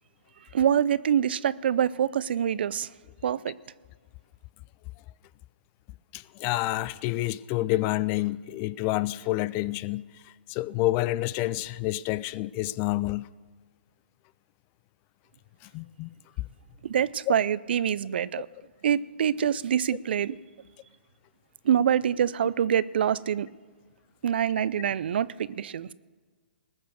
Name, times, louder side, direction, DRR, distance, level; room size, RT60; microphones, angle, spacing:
voice 1, 0.5-2.9 3.2-3.5 16.8-18.5 18.8-20.4 21.6-23.5 24.2-25.9, right 9 dB, 65° right, 0.4 m, -25 dB
voice 2, 6.1-13.3 15.6-16.1 17.3-17.4, left 17 dB, 30° left, 0.3 m, -29 dB
19.5 x 6.8 x 6.5 m
hypercardioid pair, 130°, 6 cm